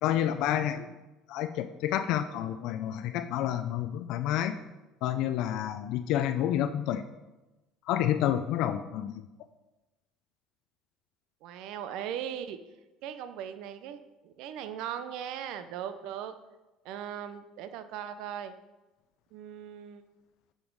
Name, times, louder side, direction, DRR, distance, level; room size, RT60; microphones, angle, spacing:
voice 1, 0.0-0.9 1.3-4.6 5.0-7.0 7.9-9.1, left 11 dB, 70° left, 9 dB, 0.4 m, -29 dB
voice 2, 11.4-12.6 13.0-16.3 16.8-18.5 19.3-20.0, right 9 dB, 70° right, 10 dB, 0.6 m, -38 dB
8.7 x 5.3 x 4.7 m, 1.0 s
supercardioid pair, 100°, 0 cm